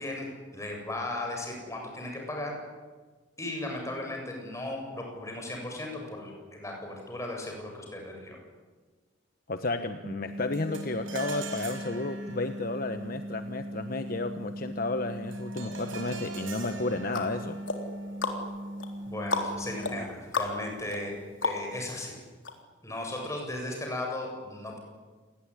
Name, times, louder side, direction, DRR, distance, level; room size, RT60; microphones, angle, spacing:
voice 1, 0.0-2.5 3.4-8.4 19.1-21.1 21.4-22.1 22.8-24.8, left 1 dB, 15° left, 1 dB, 7.7 m, -36 dB
voice 2, 9.5-17.6, left 2 dB, 50° left, 8 dB, 1.1 m, -32 dB
sound 1, 10.0-20.0, equal, 25° right, 1.9 m, -39 dB
sound 2, 10.5-20.0, right 3 dB, 85° right, 5.6 m, -44 dB
sound 3, 16.6-22.0 22.4-22.5, left 3 dB, 80° left, 3.7 m, -35 dB
28.5 x 20.0 x 10.0 m, 1.4 s
head